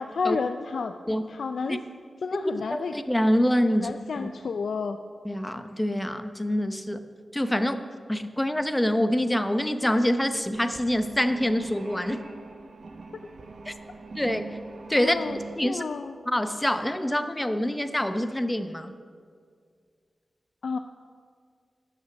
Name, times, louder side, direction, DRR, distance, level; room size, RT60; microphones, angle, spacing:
voice 1, 0.0-0.9 1.3-1.8 2.2-2.9 3.7-5.0 15.0-15.4 15.6-16.1 20.6-20.8, left 5 dB, 80° left, 8 dB, 0.4 m, -30 dB
voice 2, 2.6-4.3 5.2-7.0 7.3-7.8 8.1-12.2 13.7-13.8 14.1-14.6 14.9-15.2 15.6-15.8 16.3-18.9, equal, 15° left, 10 dB, 0.8 m, -26 dB
sound 1, 10.0-15.6, right 3 dB, 65° right, 1.1 m, -43 dB
12.0 x 6.3 x 8.5 m, 2.1 s
cardioid pair, 60°, 0 cm